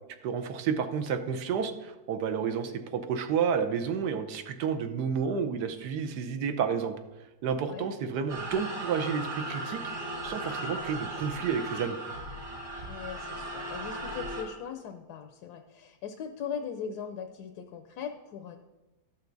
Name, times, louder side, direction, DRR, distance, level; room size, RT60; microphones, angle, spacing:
voice 1, 0.2-6.9 7.4-9.8 10.2-12.0, right 6 dB, 80° right, 9 dB, 1.4 m, -30 dB
sound 1, 8.3-14.4, right 1 dB, 60° right, 3.1 m, -37 dB
voice 2, 12.9-18.6, left 7 dB, 75° left, 5 dB, 1.2 m, -39 dB
13.5 x 5.9 x 3.9 m, 1.1 s
omnidirectional pair, 1.7 m